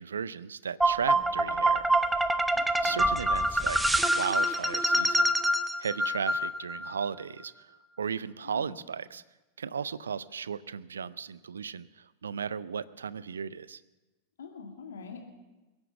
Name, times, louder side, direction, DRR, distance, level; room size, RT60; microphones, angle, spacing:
voice 1, 0.0-1.9 2.8-3.8 4.0-5.3 5.8-9.2 9.6-13.8, right 6 dB, 70° right, 19 dB, 0.5 m, -35 dB
sound 1, 0.8-6.9, right 1 dB, 5° right, 0.7 m, -26 dB
voice 2, 1.1-1.6 2.5-3.1 8.4-8.8 14.4-15.3, left 5 dB, 65° left, 3 dB, 2.5 m, -46 dB
22.0 x 8.9 x 7.1 m, 1.1 s
figure-of-eight pair, 90°, 0 cm